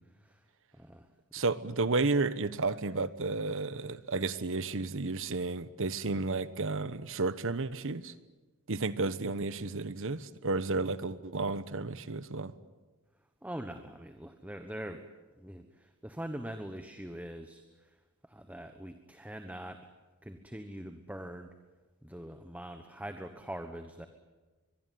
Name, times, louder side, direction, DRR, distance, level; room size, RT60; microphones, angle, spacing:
voice 1, 0.7-1.1 13.4-15.0 15.4-17.9 18.2-19.9 20.2-21.5 22.0-24.1, right 1 dB, 5° right, 7 dB, 1.2 m, -43 dB
voice 2, 1.3-8.1 8.7-12.5, right 3 dB, 60° right, 15 dB, 1.2 m, -32 dB
23.5 x 22.5 x 9.5 m, 1.2 s
head